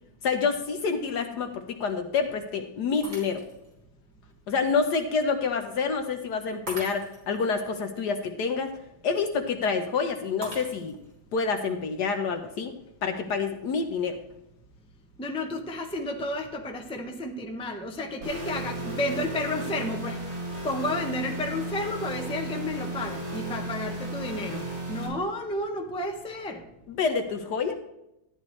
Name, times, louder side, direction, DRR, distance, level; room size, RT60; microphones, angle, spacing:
voice 1, 0.2-3.4 4.5-8.7 9.0-11.0 11.3-12.7 13.0-14.2 26.9-27.7, left 5 dB, 65° left, 6 dB, 1.3 m, -27 dB
Shatter, 3.0-3.7 4.3-4.4 6.7-7.4 10.4-11.2, right 2 dB, 50° right, 3.7 m, -40 dB
voice 2, 15.2-20.2 20.6-26.6, left 1 dB, 5° left, 2 dB, 0.7 m, -32 dB
sound 1, 18.2-25.1, right 1 dB, 65° right, 4.8 m, -34 dB
13.5 x 10.0 x 3.2 m, 0.86 s
omnidirectional pair, 2.2 m